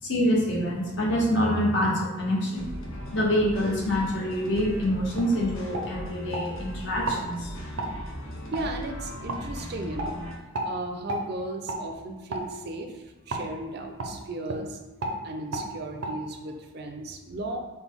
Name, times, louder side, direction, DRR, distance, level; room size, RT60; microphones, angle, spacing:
voice 1, 0.0-2.7 3.1-7.5, equal, 60° left, -3 dB, 1.1 m, -26 dB
sound 1, 2.5-10.4, left 1 dB, 85° left, 1.0 m, -38 dB
sound 2, 4.6-4.7 5.2-5.3 5.7-6.5 7.0-7.2 7.8-7.9 8.5-8.6 9.3-9.4 10.0-10.1 10.5-10.7 11.1-11.2 11.7-11.8 12.3-12.5 13.3-13.5 14.0-14.1 14.4-14.6 15.0-15.2 15.5-15.7 16.0-16.1, right 2 dB, 80° right, 0.7 m, -31 dB
voice 2, 8.5-10.2 10.6-14.8 15.2-17.6, right 2 dB, 50° right, 4 dB, 0.5 m, -35 dB
5.9 x 2.2 x 3.6 m, 1.2 s
head